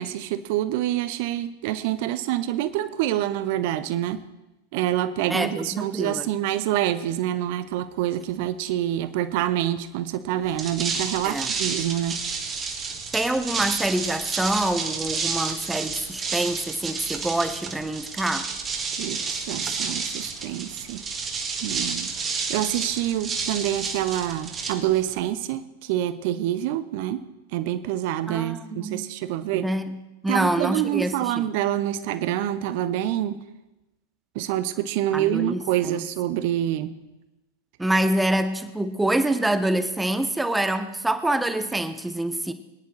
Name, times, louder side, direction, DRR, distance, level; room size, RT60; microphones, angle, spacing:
voice 1, 0.0-4.2 4.7-12.2 19.0-21.0 21.6-27.3 27.5-29.7 30.3-33.4 34.3-36.9, right 12 dB, 45° right, 13 dB, 0.6 m, -26 dB
voice 2, 5.3-6.3 11.2-11.5 13.1-18.5 28.3-29.1 29.6-29.9 30.2-31.5 35.1-36.0 37.8-42.5, right 1 dB, 5° right, 11 dB, 0.8 m, -26 dB
sound 1, 10.5-25.3, right 5 dB, 20° right, 1.7 m, -30 dB
23.0 x 10.5 x 3.2 m, 1.0 s
figure-of-eight pair, 95°, 0 cm